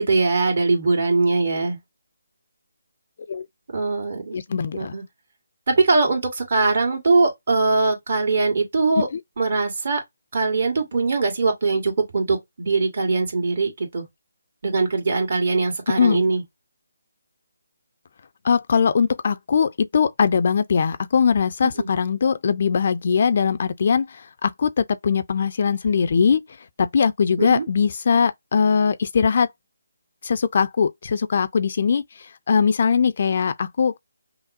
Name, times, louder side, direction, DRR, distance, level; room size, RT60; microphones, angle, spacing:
voice 1, 0.0-1.8 3.7-4.4 4.7-5.0 5.8-9.1 9.4-10.0 10.3-14.1 14.6-16.4 21.6-21.9 27.4-27.6, right 3 dB, 50° right, 1.9 m, -21 dB
voice 2, 4.3-4.9 9.0-9.2 16.0-16.3 18.4-26.4 26.8-29.5 30.2-34.0, left 6 dB, 50° left, 0.4 m, -21 dB
5.5 x 2.0 x 2.6 m
figure-of-eight pair, 150°, 0 cm